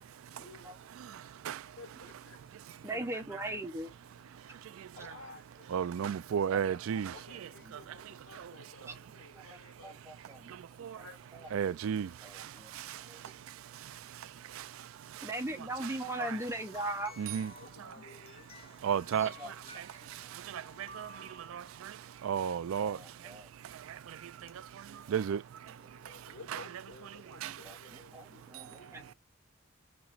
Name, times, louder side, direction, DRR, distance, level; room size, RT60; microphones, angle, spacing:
voice 1, 0.3-0.7 1.7-2.4 5.0-6.6 7.1-10.1 11.0-11.8 17.0-17.2 17.6-18.5 25.9-29.1, left 2 dB, 70° left, 1.9 m, -54 dB
voice 2, 2.8-3.9 6.5-6.6 9.3-9.4 9.8-10.5 11.3-11.5 12.2-12.7 13.0-13.2 15.2-17.1 19.2-19.8 22.8-23.5 27.6-27.8 28.1-29.0, right 1 dB, 15° right, 0.6 m, -39 dB
voice 3, 5.7-7.1 10.8-11.0 11.5-12.1 15.8-15.9 16.2-16.4 17.2-17.5 18.8-19.3 20.5-21.1 21.5-21.9 22.2-23.0 25.1-25.4 26.5-26.6 27.4-27.5, right 8 dB, 75° right, 0.3 m, -32 dB
sound 1, 16.2-22.1 24.5-24.6 25.6-25.7, left 3 dB, 30° left, 0.8 m, -54 dB
7.1 x 3.0 x 2.4 m
head